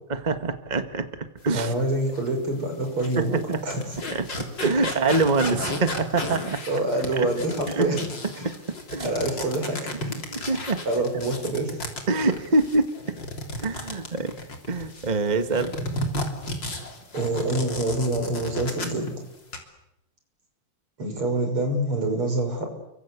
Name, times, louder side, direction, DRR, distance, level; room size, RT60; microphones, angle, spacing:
voice 1, 0.1-1.1 1.4-1.7 3.2-3.3 3.5-3.6 4.1-4.3 4.6-6.6 7.2-7.3 7.7-7.9 8.4-8.5 8.9-9.1 10.3-10.8 12.1-12.9 13.6-14.3 14.7-15.7, right 3 dB, 90° right, 8 dB, 0.4 m, -24 dB
voice 2, 1.5-3.8 5.4-5.6 6.7-8.0 8.4-8.5 9.0-9.8 10.8-11.8 17.1-19.2 21.0-22.7, right 2 dB, 35° right, 4 dB, 6.7 m, -26 dB
sound 1, 2.1-2.3 2.8-15.1 15.5-19.1 19.4-19.6, left 2 dB, 30° left, 3.9 m, -34 dB
30.0 x 24.0 x 8.3 m, 0.89 s
omnidirectional pair, 4.0 m